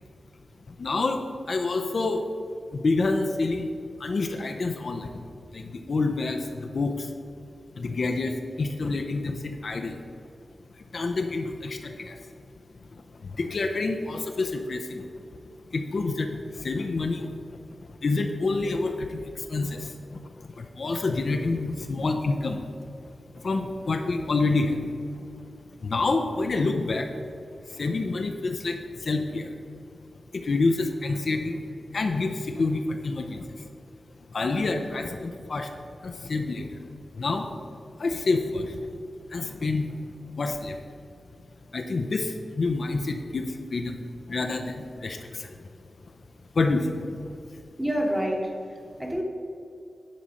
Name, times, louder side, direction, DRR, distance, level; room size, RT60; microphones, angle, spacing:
voice 1, 0.7-1.2 1.5-2.2 2.7-3.7 4.0-7.1 7.7-10.0 10.7-12.3 13.1-15.1 15.7-17.6 18.0-22.9 23.3-25.5 25.8-27.1 27.7-29.5 30.3-31.6 31.9-33.7 34.3-35.7 36.0-36.8 37.1-37.5 38.0-38.9 39.3-40.0 40.3-40.8 41.7-44.0 44.3-45.7 46.5-47.3, left 3 dB, 50° left, 5 dB, 0.5 m, -28 dB
voice 2, 47.8-49.2, equal, 10° right, 1 dB, 1.1 m, -28 dB
10.5 x 4.1 x 6.3 m, 2.5 s
wide cardioid pair, 155°, 0 cm